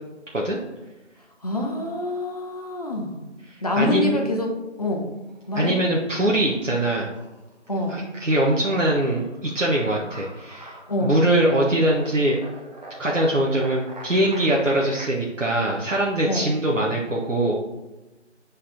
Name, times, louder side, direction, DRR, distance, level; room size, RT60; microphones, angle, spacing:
voice 1, 1.4-3.2 3.6-4.5 4.8-5.2 5.5-5.7 7.7-8.0 10.9-11.2 16.2-16.5, left 2 dB, 30° left, 1 dB, 0.9 m, -26 dB
voice 2, 3.5-4.4 5.5-7.1 7.9-12.4 13.0-17.5, right 1 dB, 80° right, -3 dB, 1.3 m, -22 dB
sound 1, 5.2-6.0 6.3-15.1, right 1 dB, 35° right, 1.1 m, -43 dB
7.5 x 4.2 x 4.2 m, 1.1 s
figure-of-eight pair, 160°, 37 cm